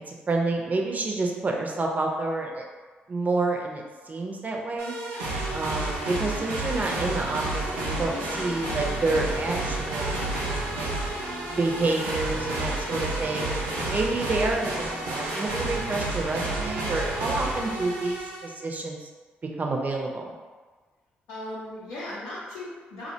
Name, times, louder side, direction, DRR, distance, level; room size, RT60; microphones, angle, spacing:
voice 1, 0.0-2.6 3.1-4.9 5.5-10.9 11.5-13.5 13.9-19.1 19.6-20.3, right 3 dB, 35° right, 0 dB, 0.5 m, -29 dB
sound 1, 4.8-18.5, right 2 dB, 90° right, 0.5 m, -30 dB
voice 2, 5.7-6.1 12.9-13.6 21.3-23.1, left 1 dB, 80° left, -10 dB, 0.5 m, -39 dB
sound 2, 6.6-15.2, equal, 25° left, 0.7 m, -41 dB
2.4 x 2.1 x 2.7 m, 1.4 s
hypercardioid pair, 50°, 4 cm